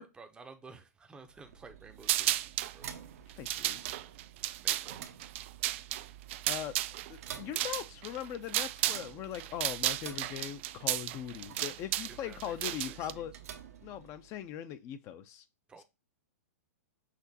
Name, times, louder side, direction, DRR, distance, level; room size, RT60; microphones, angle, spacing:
voice 1, 0.0-2.9 4.6-5.0 12.1-13.3 15.7-15.8, right 4 dB, 10° right, 0.6 m, -53 dB
sound 1, 1.3-14.5, right 9 dB, 65° right, 0.8 m, -50 dB
sound 2, 2.0-2.7 3.3-9.1 9.3-13.1, right 15 dB, 50° right, 0.3 m, -33 dB
voice 2, 3.4-3.8 6.5-6.7 7.1-13.3 13.8-15.4, left 10 dB, 35° left, 0.6 m, -40 dB
5.9 x 2.9 x 2.8 m
hypercardioid pair, 125°, 9 cm